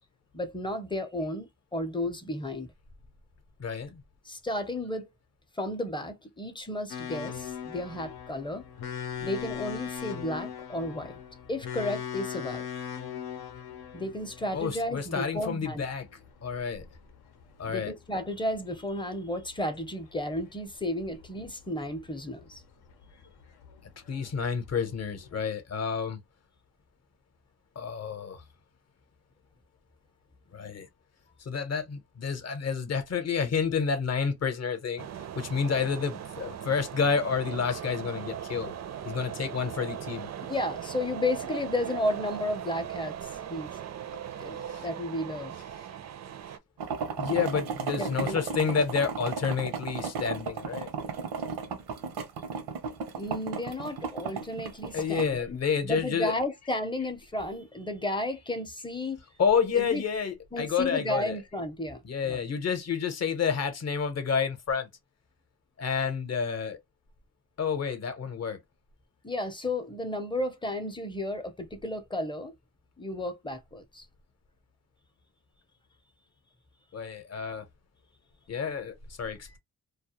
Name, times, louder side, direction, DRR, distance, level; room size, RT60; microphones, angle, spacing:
voice 1, 0.3-2.7 4.3-5.1 5.6-8.6 9.2-11.1 11.5-12.7 13.9-15.8 17.6-22.6 40.5-43.8 44.4-45.6 48.0-48.4 53.2-55.6 55.8-59.2 59.7-60.0 60.5-62.4 69.2-72.5 73.0-74.1, left 1 dB, 15° left, 0.5 m, -33 dB
voice 2, 3.6-4.0 14.5-16.1 16.4-16.8 17.6-17.9 24.1-26.2 27.8-28.4 30.5-30.9 31.5-35.1 35.4-38.7 39.1-40.3 44.7-44.8 47.2-50.9 54.9-56.4 59.4-61.4 62.0-64.9 65.8-66.8 67.6-68.6 76.9-77.6 78.5-79.6, left 6 dB, 45° left, 0.7 m, -29 dB
sound 1, 6.9-25.4, left 8 dB, 80° left, 0.7 m, -41 dB
sound 2, 35.0-46.6, right 9 dB, 45° right, 0.4 m, -39 dB
sound 3, 46.8-55.3, right 5 dB, 85° right, 0.7 m, -34 dB
2.3 x 2.0 x 2.8 m
cardioid pair, 85°, 38 cm